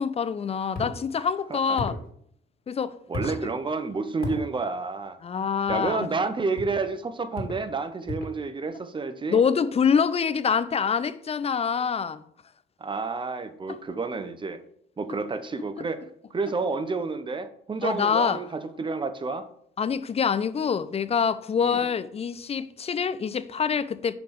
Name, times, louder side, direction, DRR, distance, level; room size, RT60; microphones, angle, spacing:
voice 1, 0.0-2.0 2.7-2.9 5.2-6.2 9.3-12.2 17.8-18.4 19.8-24.2, left 6 dB, 30° left, 0.4 m, -25 dB
sound 1, 0.7-1.0 1.7-2.1 3.1-3.4 4.2-4.4 5.7-5.9 6.5-6.8 7.3-7.6 8.1-8.4, left 2 dB, 50° left, 1.8 m, -34 dB
voice 2, 3.1-5.2 5.7-9.4 12.8-14.6 15.0-16.0 16.3-19.5 21.6-21.9, right 4 dB, 25° right, 0.7 m, -30 dB
5.2 x 5.1 x 4.5 m
cardioid pair, 90°, 20 cm